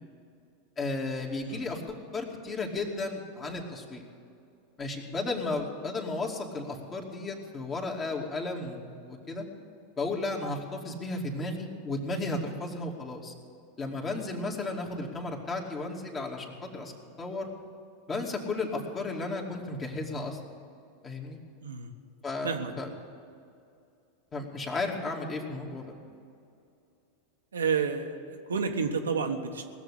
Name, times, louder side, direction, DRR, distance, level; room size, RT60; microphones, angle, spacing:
voice 1, 0.8-4.0 4.8-9.4 10.0-13.3 13.8-16.9 17.2-17.5 18.1-20.4 21.0-21.4 22.2-22.9 24.3-25.9, left 3 dB, 30° left, 1 dB, 2.5 m, -34 dB
voice 2, 21.6-21.9 22.4-23.0 27.5-29.6, right 5 dB, 85° right, 4 dB, 1.2 m, -30 dB
18.5 x 7.3 x 10.0 m, 2.5 s
hypercardioid pair, 90°, 0 cm